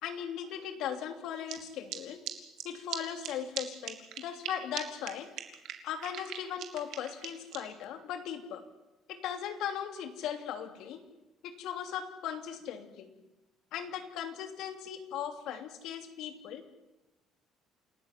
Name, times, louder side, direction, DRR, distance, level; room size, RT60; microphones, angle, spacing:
voice 1, 0.0-2.2 2.6-5.3 5.8-8.6 9.1-11.0 11.4-13.1 13.7-16.6, left 9 dB, 70° left, 7 dB, 3.0 m, -38 dB
sound 1, 1.5-1.6 1.9-2.0 2.3-2.4 2.6-2.7 2.9-3.0 3.2-3.3 3.6-3.7 3.8-4.5 4.8-4.9 5.1-5.2 5.4-7.6, right 12 dB, 65° right, 2.9 m, -38 dB
28.0 x 14.0 x 9.4 m, 1.0 s
cardioid pair, 135°, 0 cm